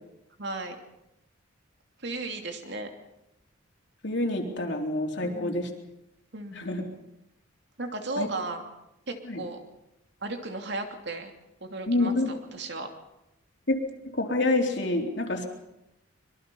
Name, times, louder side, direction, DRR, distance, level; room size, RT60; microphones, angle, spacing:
voice 1, 0.4-0.8 2.0-2.9 5.2-5.6 6.3-6.6 7.8-8.6 9.1-9.6 10.2-11.3 11.6-12.9, right 2 dB, 55° right, 4 dB, 2.8 m, -35 dB
voice 2, 4.0-5.7 6.5-6.8 8.2-8.3 9.2-9.4 11.9-12.3 13.7-13.8 14.1-15.5, left 2 dB, 60° left, 2 dB, 3.7 m, -27 dB
25.0 x 23.5 x 5.6 m, 0.89 s
head